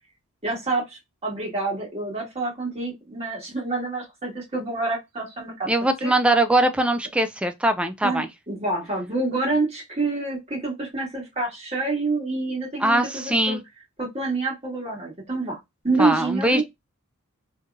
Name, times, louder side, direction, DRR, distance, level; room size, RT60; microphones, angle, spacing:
voice 1, 0.4-5.7 6.0-6.1 8.0-13.6 14.0-15.6 15.8-16.6, right 3 dB, 30° right, 1.5 m, -27 dB
voice 2, 5.6-8.3 12.8-13.6 16.0-16.6, right 1 dB, 5° right, 0.3 m, -21 dB
2.8 x 2.8 x 2.2 m
head